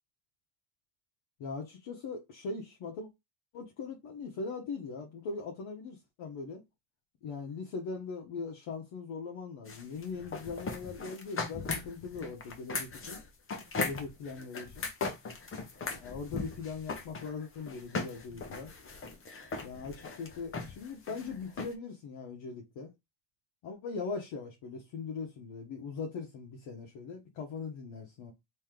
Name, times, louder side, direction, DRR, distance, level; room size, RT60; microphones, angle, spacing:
voice 1, 1.4-3.1 3.5-6.6 7.2-13.2 13.8-14.9 16.0-18.7 19.6-22.9 23.6-28.3, left 4 dB, 70° left, 1.0 m, -40 dB
sound 1, 9.7-21.7, left 4 dB, 25° left, 0.8 m, -38 dB
3.1 x 2.8 x 3.6 m
cardioid pair, 105°, 50 cm